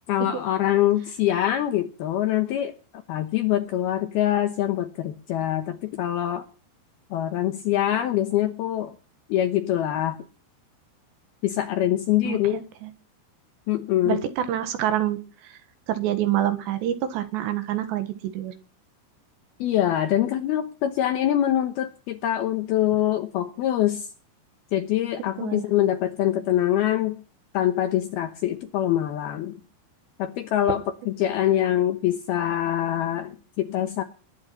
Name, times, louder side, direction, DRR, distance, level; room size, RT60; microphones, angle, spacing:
voice 1, 0.1-2.7 3.1-6.5 7.1-8.9 9.3-10.2 11.4-12.6 13.7-14.2 19.6-24.1 24.7-27.2 27.5-29.6 30.2-34.0, left 12 dB, 75° left, 9 dB, 2.4 m, -24 dB
voice 2, 12.2-12.9 14.1-15.6 15.9-18.5 25.4-25.6, right 12 dB, 70° right, 10 dB, 3.5 m, -27 dB
20.5 x 10.0 x 5.9 m, 0.38 s
omnidirectional pair, 5.6 m